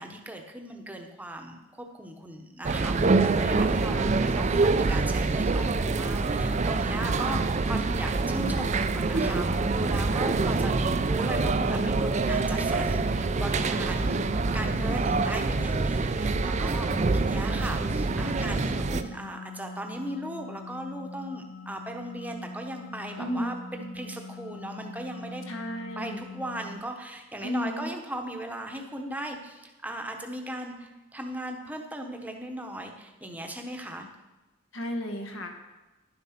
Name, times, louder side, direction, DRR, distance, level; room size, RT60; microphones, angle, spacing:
voice 1, 0.0-10.7 11.0-14.2 14.5-25.4 26.0-34.1, right 1 dB, 10° right, 3 dB, 0.9 m, -37 dB
sound 1, 2.6-19.0, right 3 dB, 35° right, 0.4 m, -26 dB
sound 2, 8.3-26.8, left 2 dB, 35° left, 0.9 m, -43 dB
voice 2, 23.2-23.6 25.5-26.2 27.4-27.9 34.7-35.6, equal, 70° left, 4 dB, 1.5 m, -33 dB
11.0 x 7.5 x 5.9 m, 1.1 s
head